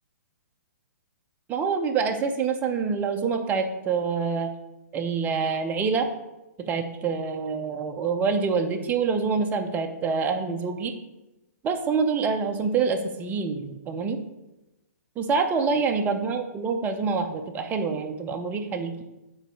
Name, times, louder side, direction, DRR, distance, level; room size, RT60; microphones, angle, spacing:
voice 1, 1.5-4.5 4.9-6.1 6.6-10.9 11.6-14.2 15.2-19.0, right 5 dB, 20° right, 4 dB, 0.7 m, -26 dB
6.7 x 4.0 x 4.8 m, 0.98 s
hypercardioid pair, 130°, 9 cm